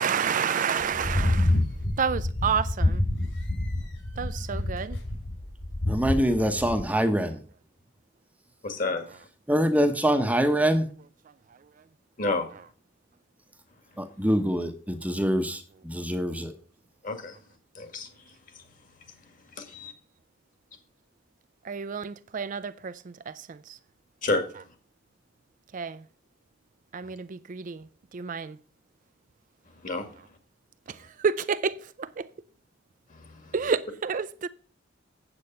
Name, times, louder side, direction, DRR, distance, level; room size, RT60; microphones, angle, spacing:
voice 1, 0.0-1.6 2.0-3.0 4.2-5.0 21.7-23.8 25.7-26.0 26.9-27.8 28.1-28.6 31.2-32.3 33.5-34.5, right 6 dB, 45° right, 0.4 m, -29 dB
sound 1, 0.8-6.8, left 1 dB, 75° left, 4.7 m, -27 dB
voice 2, 5.9-7.4 9.5-10.9 14.0-16.5, equal, 10° right, 0.9 m, -24 dB
voice 3, 8.6-9.0 12.2-12.5 17.0-17.4 17.8-18.1 19.6-19.9 24.2-24.4 29.8-30.1 33.1-33.6, left 3 dB, 45° left, 1.8 m, -29 dB
8.6 x 7.8 x 5.4 m
head